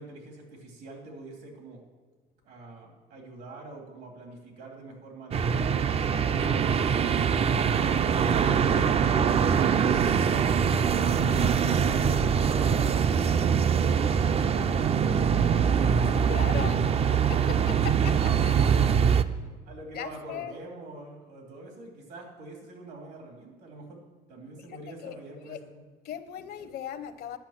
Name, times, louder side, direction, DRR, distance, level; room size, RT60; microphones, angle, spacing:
voice 1, 0.0-1.8 2.4-5.7 6.0-9.8 11.5-13.7 14.1-19.1 19.7-24.0 24.3-25.9, right 2 dB, 75° right, 1 dB, 2.8 m, -44 dB
sound 1, 5.3-19.2, right 7 dB, 35° right, 0.4 m, -23 dB
voice 2, 16.3-16.8 17.3-17.6 17.8-18.1 18.4-18.6 19.9-20.5 24.7-25.2 25.5-25.6 26.0-27.4, left 10 dB, 65° left, 11 dB, 0.8 m, -37 dB
10.5 x 5.6 x 7.3 m, 1.4 s
cardioid pair, 110°, 17 cm